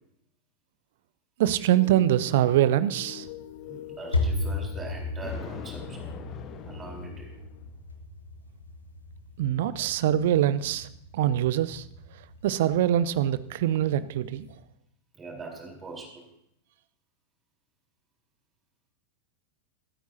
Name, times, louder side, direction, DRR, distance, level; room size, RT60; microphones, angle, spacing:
voice 1, 1.4-3.3 9.4-10.9 11.1-11.9 12.4-14.5, right 12 dB, 55° right, 16 dB, 0.6 m, -24 dB
sound 1, 1.7-7.7, left 15 dB, 50° left, 0.6 m, -46 dB
sound 2, 3.2-14.6, left 2 dB, 80° left, 1.2 m, -36 dB
voice 2, 3.6-6.1 6.7-7.3 9.8-9.9 15.1-16.2, right 2 dB, 20° right, -1 dB, 3.9 m, -42 dB
Thunder, 5.2-7.7, left 7 dB, 30° left, 1.2 m, -43 dB
23.0 x 9.2 x 2.8 m, 0.77 s
figure-of-eight pair, 90°, 0 cm